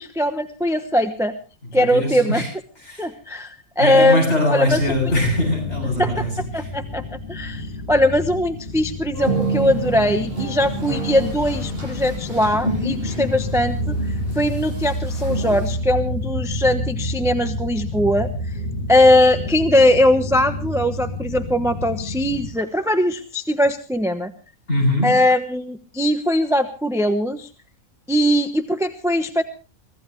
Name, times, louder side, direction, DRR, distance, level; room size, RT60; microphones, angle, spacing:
voice 1, 0.0-1.3 1.7-2.4 3.0-4.8 6.0-6.2 6.5-7.0 7.3-13.9 14.3-18.3 18.9-24.3 25.0-27.5 28.1-29.4, left 1 dB, ahead, 7 dB, 1.0 m, -20 dB
voice 2, 1.8-2.5 2.8-3.0 3.8-6.7 24.7-25.2, left 1 dB, 50° left, 1 dB, 8.3 m, -22 dB
sound 1, 4.7-22.5, left 1 dB, 70° left, 2.9 m, -29 dB
sound 2, 9.1-15.7, right 2 dB, 40° right, 8.5 m, -29 dB
24.0 x 16.0 x 3.3 m, 0.34 s
omnidirectional pair, 1.5 m